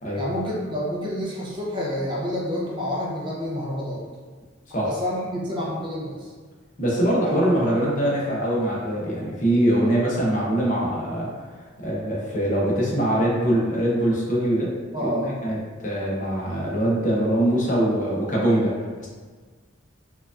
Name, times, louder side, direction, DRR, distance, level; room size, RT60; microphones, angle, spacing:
voice 1, 0.2-4.0 4.8-6.3 14.9-15.3, left 1 dB, 25° right, -5 dB, 0.6 m, -28 dB
voice 2, 6.8-14.7 15.0-15.6 15.8-18.7 19.0-19.1, right 1 dB, 40° left, -5 dB, 0.7 m, -23 dB
4.5 x 2.4 x 2.4 m, 1.5 s
head